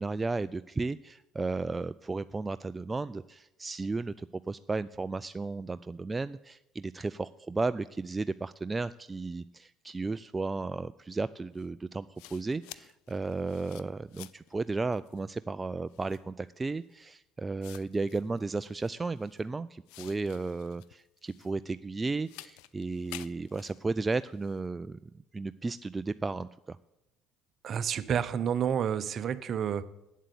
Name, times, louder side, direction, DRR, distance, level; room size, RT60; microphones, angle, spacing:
voice 1, 0.0-12.1 12.3-25.0 25.3-26.8, right 3 dB, 20° right, 13 dB, 0.3 m, -34 dB
sound 1, 11.6-11.7 12.2-14.5 14.9-15.3 15.9-16.3 17.0-17.1 17.6-19.4 19.9-21.6 22.2-24.6, left 17 dB, 75° left, 0.4 m, -51 dB
voice 2, 27.6-29.8, right 8 dB, 50° right, 15 dB, 0.7 m, -29 dB
8.3 x 7.4 x 8.4 m, 0.93 s
supercardioid pair, 75°, 0 cm